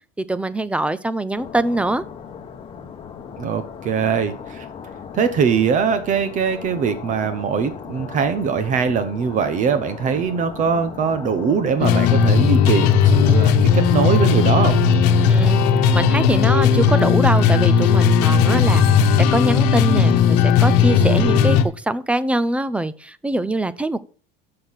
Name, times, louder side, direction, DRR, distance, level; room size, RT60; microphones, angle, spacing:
voice 1, 0.2-2.0 15.3-15.6 15.9-24.0, right 1 dB, 5° right, 0.4 m, -23 dB
sound 1, 1.4-17.2, left 7 dB, 25° left, 1.1 m, -37 dB
voice 2, 3.4-4.7 5.1-14.8, right 6 dB, 40° right, 1.0 m, -21 dB
sound 2, 11.8-21.6, left 6 dB, 90° left, 1.1 m, -16 dB
6.7 x 6.2 x 7.3 m
cardioid pair, 150°, 20 cm